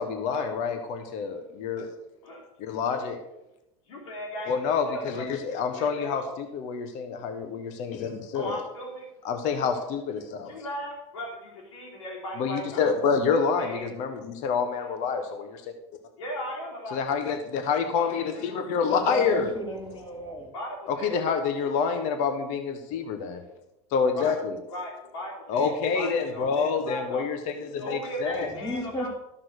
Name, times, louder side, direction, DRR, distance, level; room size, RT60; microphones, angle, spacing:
voice 1, 0.0-1.9 2.6-3.2 4.5-8.6 9.2-10.5 12.4-15.7 16.9-19.5 20.9-23.4 23.9-24.6 25.5-28.5, left 5 dB, 55° left, 1.4 m, -27 dB
voice 2, 3.9-4.6 4.9-5.2 5.7-6.3 8.3-9.0 10.5-12.9 13.3-13.9 16.2-17.0 18.0-18.4 20.5-21.2 24.1-24.3 24.7-27.2 27.8-29.1, equal, 90° left, 3.4 m, -37 dB
voice 3, 18.9-20.5 28.4-29.1, equal, 30° left, 4.2 m, -34 dB
13.5 x 5.9 x 6.6 m
supercardioid pair, 120°, 15 cm